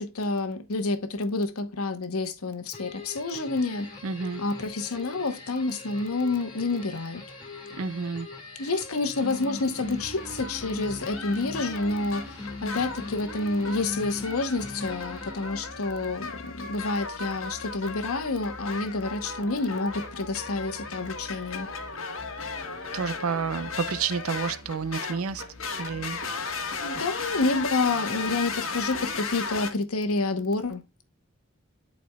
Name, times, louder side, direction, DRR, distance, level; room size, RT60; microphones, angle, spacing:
voice 1, 0.0-3.9 4.4-7.2 8.6-21.7 26.3-26.6 26.8-30.8, left 3 dB, 90° left, 1.0 m, -29 dB
sound 1, 2.7-15.9, left 2 dB, 25° left, 1.8 m, -41 dB
voice 2, 4.0-4.4 7.7-8.3 22.9-25.4 25.8-26.2, right 5 dB, 85° right, 0.5 m, -30 dB
sound 2, 9.8-29.7, left 4 dB, 70° left, 1.2 m, -36 dB
11.0 x 4.3 x 2.3 m
head